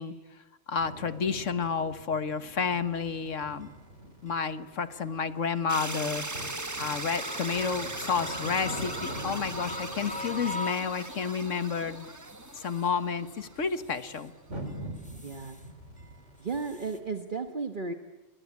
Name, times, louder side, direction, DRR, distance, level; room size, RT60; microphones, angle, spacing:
voice 1, 0.0-3.7 4.2-6.3 6.8-12.1 12.5-14.3, left 6 dB, 80° left, 12 dB, 1.7 m, -31 dB
sound 1, 0.8-17.1, equal, 70° right, 4.8 m, -45 dB
sound 2, 2.3-2.4 3.0-3.1 3.6-3.7 4.3-4.4 4.9-5.1 5.6-5.7 6.2-6.3 6.9-11.6 12.1-12.9 13.4-14.3 14.7-15.7 16.0-17.0, left 2 dB, 5° left, 1.9 m, -43 dB
sound 3, 5.7-13.7, right 2 dB, 15° right, 1.0 m, -39 dB
voice 2, 15.2-15.6 16.4-17.9, right 4 dB, 40° right, 6 dB, 1.4 m, -34 dB
28.0 x 23.0 x 8.5 m, 1.3 s
omnidirectional pair, 1.3 m